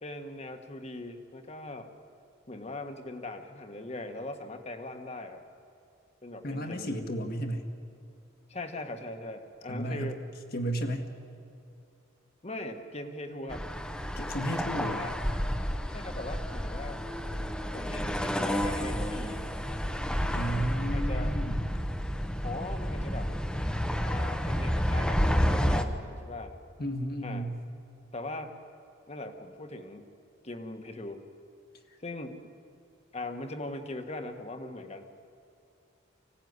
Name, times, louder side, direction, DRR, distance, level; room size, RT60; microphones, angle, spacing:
voice 1, 0.0-1.9 2.5-5.4 6.2-7.0 8.5-10.2 12.4-13.6 14.9-15.1 15.9-17.0 17.7-19.4 20.9-21.3 22.4-23.3 24.0-26.5 27.2-27.5 28.1-28.6 29.1-30.0 30.4-31.2 32.0-32.4 33.1-35.1, left 2 dB, 35° left, 7 dB, 1.5 m, -40 dB
voice 2, 6.4-7.7 9.7-10.1 10.5-11.1 14.2-15.1 20.3-21.7 26.8-27.6, right 1 dB, 50° left, 5 dB, 1.9 m, -33 dB
sound 1, 13.5-25.8, equal, 5° left, 1.0 m, -30 dB
24.5 x 17.0 x 9.6 m, 2.5 s
head